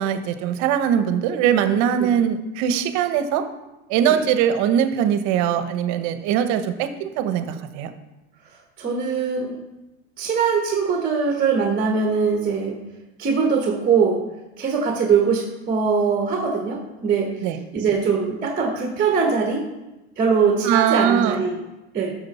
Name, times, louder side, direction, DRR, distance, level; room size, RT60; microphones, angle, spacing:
voice 1, 0.0-3.5 3.9-7.9 17.4-17.6 20.6-21.4, right 9 dB, 60° right, 10 dB, 1.0 m, -21 dB
voice 2, 8.8-9.6 10.2-12.8 13.2-14.2 14.6-19.6 20.2-21.6 21.9-22.1, right 5 dB, 25° right, 2 dB, 1.3 m, -21 dB
12.5 x 6.5 x 4.2 m, 1.0 s
supercardioid pair, 120°, 33 cm